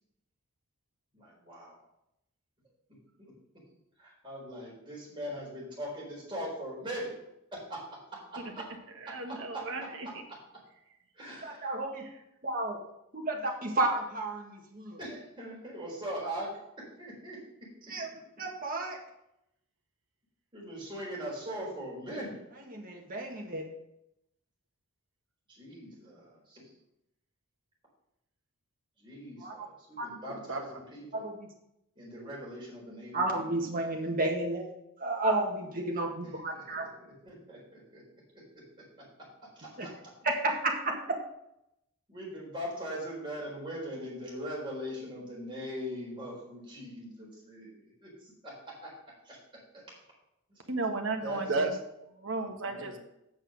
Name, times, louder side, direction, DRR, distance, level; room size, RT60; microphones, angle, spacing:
voice 1, 1.1-1.8 3.2-3.3 4.0-7.1 7.5-8.7 9.1-10.1 11.1-11.7 15.0-17.7 20.5-22.4 25.5-26.7 29.0-31.3 32.0-33.5 36.5-38.0 38.3-39.9 40.2-40.3 42.1-48.9 49.2-49.4 49.7-50.0 51.2-51.4 52.6-53.0, equal, 20° right, -5 dB, 4.2 m, -41 dB
voice 2, 8.4-10.2 12.0-12.2 30.3-30.8 50.7-53.0, right 3 dB, 60° right, 4 dB, 1.4 m, -35 dB
voice 3, 11.4-12.0 12.4-12.8 13.1-15.0 17.9-19.0 22.6-23.7 29.4-29.7 30.0-30.1 31.1-31.5 33.1-34.7 35.0-36.9 39.8-39.9 40.2-41.2, right 2 dB, 40° right, 0 dB, 1.8 m, -32 dB
7.9 x 6.5 x 6.5 m, 0.83 s
head